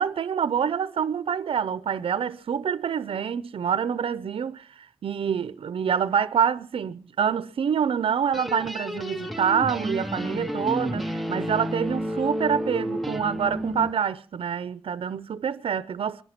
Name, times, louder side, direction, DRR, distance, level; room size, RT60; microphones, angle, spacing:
voice 1, 0.0-16.2, right 7 dB, 75° right, 0.7 m, -26 dB
sound 1, 8.3-13.9, equal, ahead, 0.9 m, -31 dB
22.0 x 11.0 x 5.9 m
wide cardioid pair, 90°, 10 cm